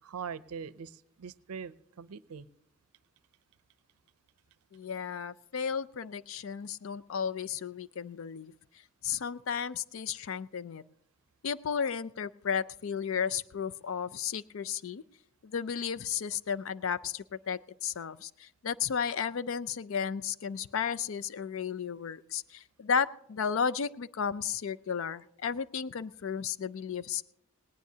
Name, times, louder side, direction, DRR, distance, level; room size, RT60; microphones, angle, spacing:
voice 1, 0.0-2.5, right 6 dB, 90° right, 16 dB, 0.5 m, -42 dB
voice 2, 4.7-8.5 9.0-10.8 11.4-15.0 15.4-27.2, left 7 dB, 65° left, 17 dB, 0.4 m, -33 dB
19.0 x 18.5 x 2.8 m, 0.75 s
head